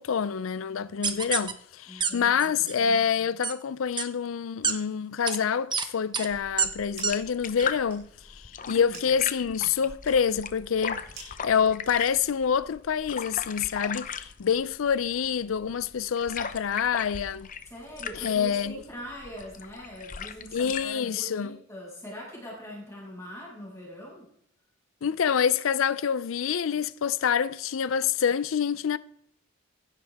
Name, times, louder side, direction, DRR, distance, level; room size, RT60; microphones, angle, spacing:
voice 1, 0.0-17.5 18.2-18.7 20.5-21.5 25.0-29.0, left 7 dB, 80° left, 0.5 m, -27 dB
sound 1, 1.0-1.5 2.0-2.1 2.4-2.7 3.4-3.5 4.0-4.1 4.6-4.7 5.3-5.4 5.7-5.9 6.1-6.3 6.6-6.7 7.0-7.1 7.6-7.7, right 6 dB, 25° right, 1.0 m, -26 dB
voice 2, 1.9-2.6 8.6-9.0 17.7-24.2, equal, 15° left, 6.2 m, -42 dB
sound 2, 6.3-20.9, left 6 dB, 40° left, 0.8 m, -39 dB
sound 3, 6.5-7.3 7.6-12.5, right 4 dB, 60° right, 6.6 m, -51 dB
16.0 x 12.0 x 3.5 m
head